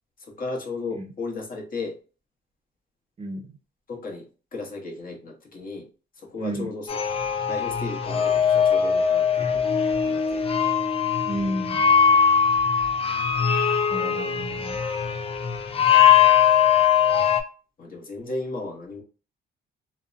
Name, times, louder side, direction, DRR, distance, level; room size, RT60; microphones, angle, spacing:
voice 1, 0.3-2.0 3.9-4.3 4.5-5.9 6.2-6.9 7.5-9.7 10.0-10.5 17.8-19.0, left 3 dB, 45° left, 0 dB, 0.9 m, -34 dB
voice 2, 6.4-6.7 11.2-11.9 13.9-14.8, right 1 dB, 30° right, 5 dB, 0.6 m, -31 dB
sound 1, 6.9-17.4, left 8 dB, 30° left, 0.4 m, -21 dB
2.7 x 2.0 x 2.5 m, 0.36 s
cardioid pair, 90°, 20 cm